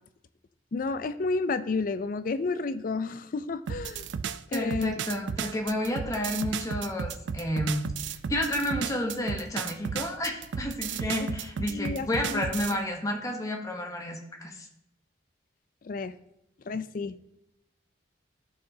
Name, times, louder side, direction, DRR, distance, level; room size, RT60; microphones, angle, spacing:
voice 1, 0.7-4.1 4.5-5.0 11.2-11.3 11.7-12.5 15.8-16.1 16.7-17.2, left 3 dB, 45° left, 12 dB, 0.4 m, -31 dB
sound 1, 3.7-12.8, right 7 dB, 75° right, 0.3 m, -34 dB
voice 2, 4.5-14.7, left 1 dB, 20° left, 2 dB, 0.9 m, -31 dB
13.0 x 4.7 x 2.7 m, 0.82 s
head